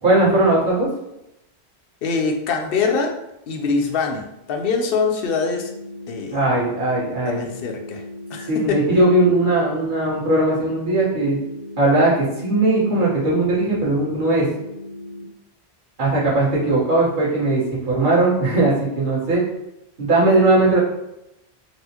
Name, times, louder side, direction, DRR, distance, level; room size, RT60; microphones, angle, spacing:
voice 1, 0.0-0.9 6.3-7.5 8.4-11.4 11.8-14.5 16.0-19.4 20.0-20.8, right 2 dB, 50° right, -7 dB, 1.3 m, -18 dB
voice 2, 2.0-3.1 3.5-5.7 6.1-6.4 7.2-8.0 8.3-8.8, left 4 dB, 65° left, 3 dB, 0.7 m, -23 dB
sound 1, 5.2-15.2, left 1 dB, 10° right, 0.7 m, -37 dB
4.2 x 2.0 x 2.9 m, 0.87 s
omnidirectional pair, 1.1 m